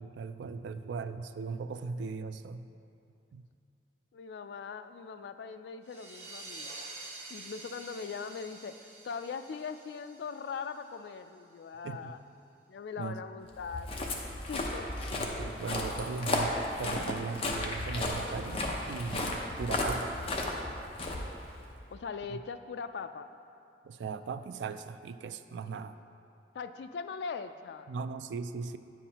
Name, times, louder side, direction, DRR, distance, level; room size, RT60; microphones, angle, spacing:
voice 1, 0.0-2.7 3.3-3.4 11.8-12.1 13.0-13.2 15.1-20.2 22.3-22.4 23.8-26.0 27.9-28.8, right 5 dB, 90° right, 11 dB, 0.3 m, -38 dB
voice 2, 4.1-6.7 7.3-12.2 12.7-14.9 21.9-23.3 26.5-27.9, left 5 dB, 70° left, 10 dB, 0.3 m, -41 dB
sound 1, 5.8-11.2, right 2 dB, 40° right, 0.9 m, -48 dB
Walk footsteps, 13.6-21.8, left 1 dB, 35° left, 0.7 m, -34 dB
9.7 x 7.2 x 2.9 m, 2.6 s
head